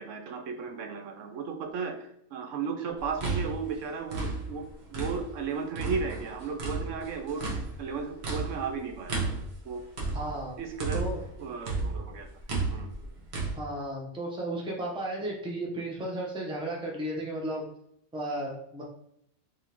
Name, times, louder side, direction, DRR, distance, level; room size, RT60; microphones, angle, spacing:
voice 1, 0.0-4.6 4.9-7.5 7.8-9.3 9.7-9.8 10.6-11.0 11.4-12.3 12.7-12.9, right 5 dB, 70° right, 5 dB, 0.9 m, -35 dB
sound 1, 3.0-5.4 5.7-11.3 11.6-13.5, right 3 dB, 55° right, 1.2 m, -33 dB
voice 2, 10.1-10.6 10.9-11.2 13.5-17.7 18.1-18.8, right 1 dB, 5° right, -2 dB, 0.6 m, -34 dB
3.7 x 3.5 x 2.9 m, 0.72 s
omnidirectional pair, 1.4 m